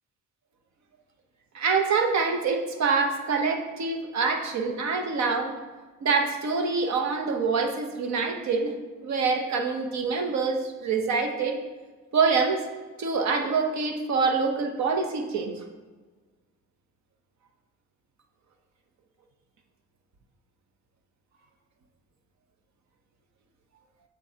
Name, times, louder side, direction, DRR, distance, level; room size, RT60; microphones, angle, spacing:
voice 1, 1.5-5.6 6.0-8.7 9.0-11.6 12.1-12.7 13.0-15.5, right 4 dB, 65° right, 4 dB, 1.0 m, -25 dB
11.5 x 3.9 x 2.9 m, 1.3 s
cardioid pair, 90°, 30 cm